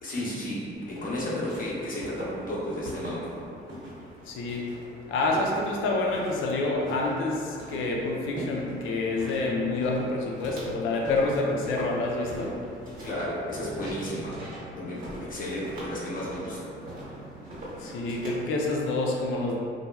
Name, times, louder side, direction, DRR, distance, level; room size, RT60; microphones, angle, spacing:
voice 1, 0.0-3.4 13.0-14.4 14.8-16.7, left 1 dB, 45° left, -7 dB, 0.7 m, -33 dB
Walk footsteps, 0.7-18.4, right 1 dB, 45° right, 1.1 m, -42 dB
voice 2, 4.3-4.7 5.1-12.6 17.8-19.6, left 2 dB, 85° left, -1 dB, 0.4 m, -28 dB
2.8 x 2.2 x 2.2 m, 2.4 s
cardioid pair, 90°, 20 cm